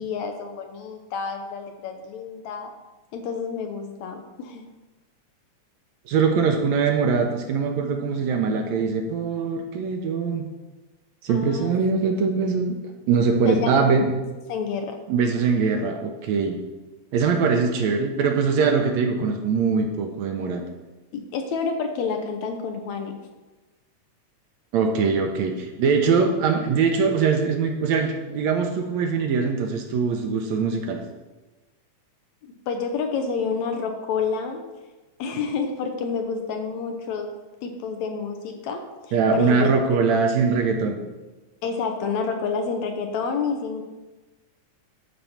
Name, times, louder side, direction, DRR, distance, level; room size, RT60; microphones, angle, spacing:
voice 1, 0.0-2.7 3.1-4.7 11.3-12.1 13.5-13.8 14.5-15.0 17.5-17.6 21.1-23.1 32.7-34.6 35.2-37.3 37.6-39.7 40.2-40.3 41.6-43.8, left 5 dB, 70° left, 5 dB, 2.0 m, -29 dB
voice 2, 6.1-10.5 11.2-14.1 15.1-16.6 17.1-20.6 24.7-31.0 39.1-41.0, right 5 dB, 70° right, 3 dB, 1.9 m, -22 dB
12.5 x 4.2 x 5.7 m, 1.2 s
omnidirectional pair, 3.6 m